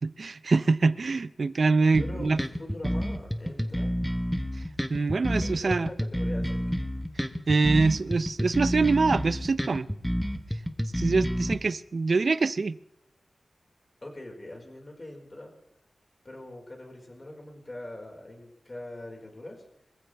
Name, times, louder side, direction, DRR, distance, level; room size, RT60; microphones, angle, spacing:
voice 1, 0.0-2.4 4.9-5.9 7.5-9.9 10.9-12.8, right 4 dB, 55° right, 0.5 m, -24 dB
sound 1, 1.9-11.5, equal, ahead, 1.2 m, -29 dB
voice 2, 2.0-4.0 5.4-6.6 14.0-15.5 16.2-19.6, left 1 dB, 30° left, 4.9 m, -42 dB
24.5 x 15.5 x 3.5 m
wide cardioid pair, 100°, 0 cm